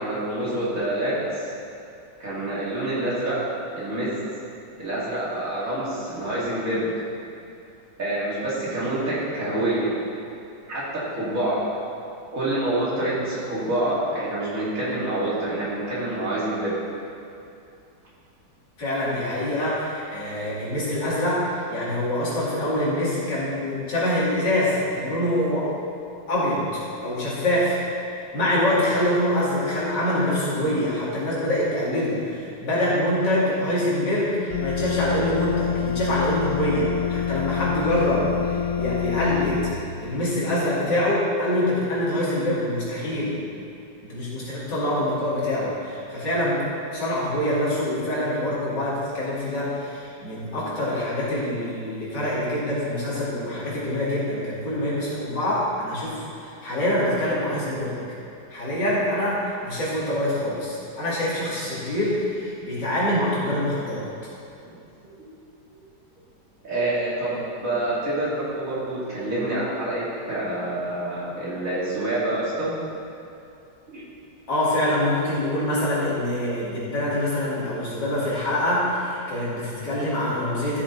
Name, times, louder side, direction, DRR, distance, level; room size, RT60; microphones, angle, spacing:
voice 1, 0.0-1.5 2.2-3.4 3.7-4.1 4.8-6.9 8.0-9.9 10.7-11.6 12.3-16.8 65.0-65.3 66.6-72.7 73.9-74.0, right 1 dB, 50° right, -9 dB, 3.1 m, -27 dB
voice 2, 18.8-25.7 26.3-26.6 27.0-27.8 28.1-39.7 40.0-43.4 44.0-46.6 46.9-58.0 58.5-64.1 74.5-80.8, left 1 dB, 80° left, -8 dB, 3.3 m, -25 dB
sound 1, 34.5-39.7, left 8 dB, 50° left, 1.2 m, -27 dB
13.5 x 7.2 x 4.1 m, 2.7 s
omnidirectional pair, 1.9 m